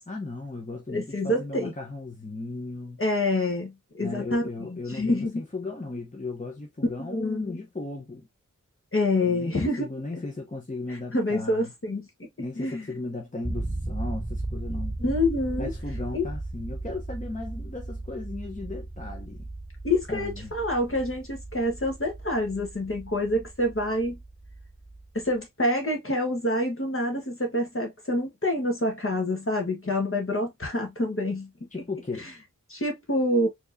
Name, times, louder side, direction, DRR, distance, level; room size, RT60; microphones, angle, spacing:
voice 1, 0.1-3.0 4.0-8.3 9.2-11.7 12.4-15.0 15.6-19.5 20.1-20.5 31.7-32.3, left 2 dB, 25° left, 1.0 m, -36 dB
voice 2, 0.9-1.7 3.0-5.4 7.0-7.5 8.9-9.9 10.9-12.1 12.6-12.9 15.0-15.7 16.1-16.3 19.8-24.2 25.1-31.7 32.7-33.5, left 1 dB, 40° left, 1.4 m, -27 dB
sound 1, 13.4-25.4, right 2 dB, 5° right, 0.5 m, -36 dB
4.5 x 3.0 x 2.7 m
wide cardioid pair, 50°, 33 cm